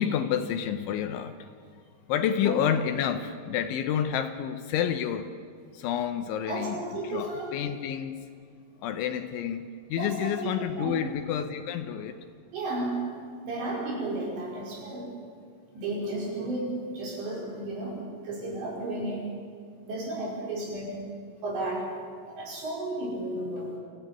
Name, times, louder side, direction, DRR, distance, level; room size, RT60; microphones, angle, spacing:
voice 1, 0.0-1.5 2.1-5.3 5.7-6.8 7.0-8.2 8.8-12.2, left 9 dB, 75° left, 8 dB, 3.1 m, -29 dB
voice 2, 6.5-7.5 10.0-11.1 12.5-13.1 13.4-15.1 15.7-19.3 19.9-21.0 21.4-22.0 22.3-23.8, right 2 dB, 60° right, -3 dB, 7.3 m, -33 dB
25.0 x 15.0 x 9.2 m, 2.1 s
omnidirectional pair, 5.8 m